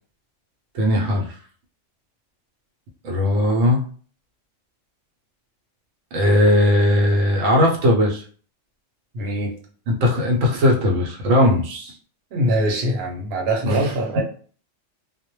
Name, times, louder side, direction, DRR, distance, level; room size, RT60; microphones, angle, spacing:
voice 1, 0.7-1.4 3.0-3.8 6.1-8.2 9.9-11.9 13.7-14.2, left 1 dB, 85° right, -1 dB, 0.9 m, -18 dB
voice 2, 9.1-9.5 12.3-14.2, right 1 dB, 60° right, 0 dB, 0.9 m, -23 dB
2.1 x 2.1 x 3.0 m, 0.43 s
omnidirectional pair, 1.3 m